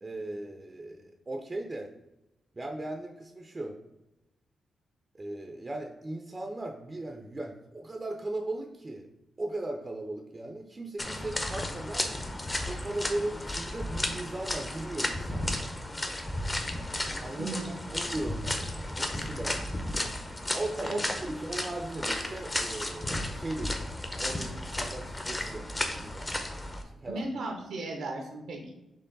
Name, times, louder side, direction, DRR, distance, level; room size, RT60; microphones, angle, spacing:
voice 1, 0.0-1.9 2.6-3.7 5.2-9.1 9.4-12.1 12.7-15.7 17.2-19.8 20.5-25.7 26.0-26.6 27.0-27.2, right 2 dB, 25° right, 3 dB, 0.4 m, -37 dB
sound 1, 11.0-26.8, left 1 dB, 20° left, 0.6 m, -34 dB
voice 2, 17.4-17.7 18.1-18.2 20.8-21.0 27.1-28.7, right 2 dB, 85° right, 2 dB, 0.7 m, -36 dB
4.5 x 2.9 x 3.9 m, 0.95 s
cardioid pair, 90°, 0 cm